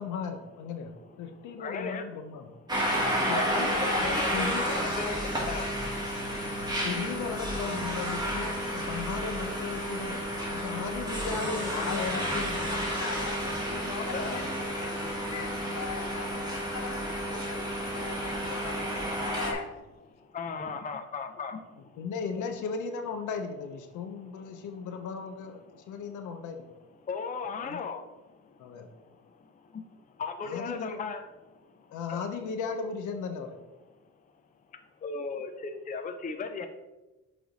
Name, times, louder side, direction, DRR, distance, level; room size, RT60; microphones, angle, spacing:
voice 1, 0.0-2.4 3.3-4.7 6.8-10.2 10.5-12.7 22.0-26.6 27.6-27.8 28.6-28.9 30.4-31.0 31.9-33.6, left 5 dB, 80° left, 6 dB, 0.7 m, -36 dB
voice 2, 1.6-2.1 3.3-5.7 14.1-14.4 20.3-21.6 27.1-28.0 29.7-29.8 30.2-31.2 32.1-32.3 35.0-36.7, left 5 dB, 25° left, 6 dB, 0.5 m, -36 dB
sound 1, 2.7-19.5, equal, 15° right, 1.8 m, -31 dB
voice 3, 11.7-13.4 13.6-16.4 16.7-19.7, left 6 dB, 60° left, 5 dB, 1.0 m, -41 dB
7.6 x 3.3 x 4.0 m, 1.1 s
cardioid pair, 90°, 30 cm